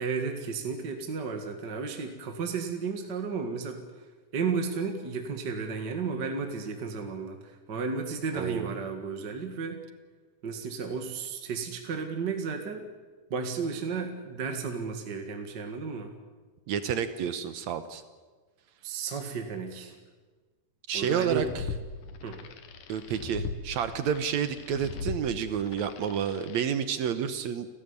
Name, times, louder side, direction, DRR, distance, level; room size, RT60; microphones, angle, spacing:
voice 1, 0.0-3.8 4.3-9.8 10.4-12.9 13.3-16.1 18.8-19.9 20.9-21.5 22.2-22.4, right 5 dB, 40° right, 4 dB, 2.0 m, -33 dB
voice 2, 8.3-8.7 16.7-18.0 20.9-21.6 22.9-27.7, right 8 dB, 70° right, 10 dB, 2.1 m, -30 dB
sound 1, 21.2-26.7, left 5 dB, 80° left, 3.1 m, -39 dB
30.0 x 12.5 x 9.6 m, 1.3 s
omnidirectional pair, 3.7 m